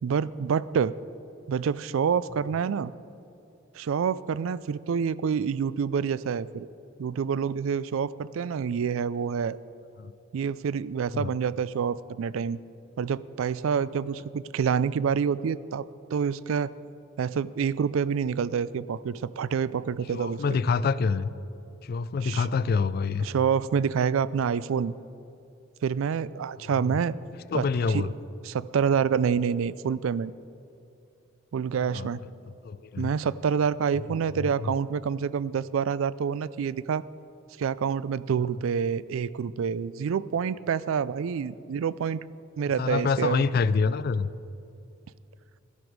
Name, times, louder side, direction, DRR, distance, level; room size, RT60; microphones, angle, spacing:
voice 1, 0.0-0.9 1.5-2.9 3.7-6.7 7.0-9.6 10.3-12.6 13.0-15.9 16.1-16.7 17.2-20.6 22.2-22.5 23.2-24.9 25.8-27.2 27.5-27.6 27.9-28.1 28.4-30.3 31.5-32.2 33.0-37.0 37.6-42.2 42.6-43.4, right 7 dB, 70° right, 19 dB, 0.3 m, -27 dB
voice 2, 20.1-21.3 21.8-23.3 26.4-26.5 26.8-27.0 27.5-28.1 31.9-32.1 32.6-33.1 34.4-34.7 42.8-44.3, left 5 dB, 45° left, 16 dB, 0.3 m, -26 dB
13.5 x 11.5 x 4.7 m, 2.6 s
head